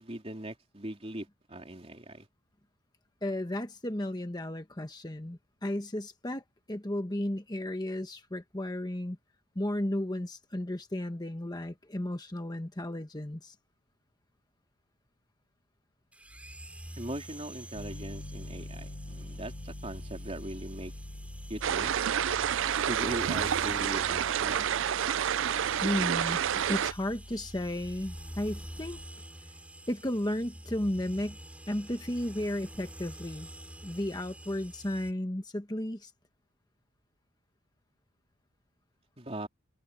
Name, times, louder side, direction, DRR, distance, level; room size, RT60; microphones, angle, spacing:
voice 1, 0.0-2.3 17.0-20.9 21.5-21.9 22.8-24.7 39.2-39.5, right 1 dB, 30° right, 3.6 m, -40 dB
voice 2, 3.2-9.2 9.5-13.5 25.8-26.4 26.7-29.0 29.9-31.4 31.7-33.5 33.8-36.1, left 1 dB, 20° left, 1.2 m, -34 dB
sound 1, 16.1-35.1, right 1 dB, 5° right, 7.1 m, -48 dB
Piano, 17.7-29.1, left 1 dB, 60° left, 1.3 m, -45 dB
sound 2, 21.6-26.9, right 9 dB, 65° right, 0.4 m, -29 dB
head